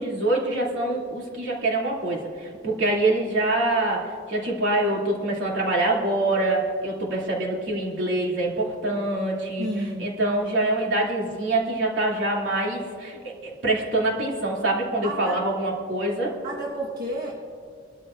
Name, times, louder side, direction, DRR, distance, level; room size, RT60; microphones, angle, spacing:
voice 1, 0.0-9.7 10.0-16.3, right 2 dB, 90° right, -3 dB, 2.7 m, -25 dB
voice 2, 9.6-10.1 15.0-15.4 16.4-17.4, right 1 dB, 55° right, -3 dB, 1.4 m, -31 dB
22.0 x 13.0 x 2.5 m, 2.2 s
head